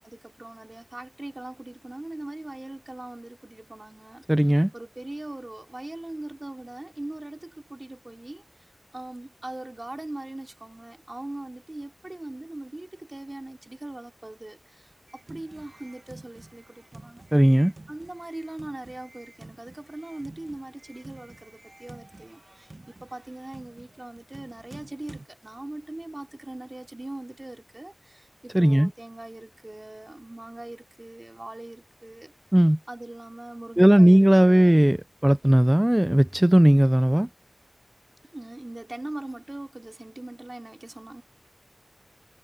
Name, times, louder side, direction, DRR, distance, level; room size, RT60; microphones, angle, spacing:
voice 1, 0.0-4.2 4.7-8.4 8.9-17.2 17.9-22.7 23.0-32.3 32.9-34.7 38.3-41.2, right 1 dB, 35° right, 3.6 m, -40 dB
voice 2, 4.3-4.7 17.3-17.7 28.5-28.9 32.5-32.8 33.8-37.3, right 1 dB, 15° right, 0.4 m, -17 dB
sound 1, 15.1-25.3, right 2 dB, 55° right, 1.0 m, -49 dB
wide cardioid pair, 45°, 0 cm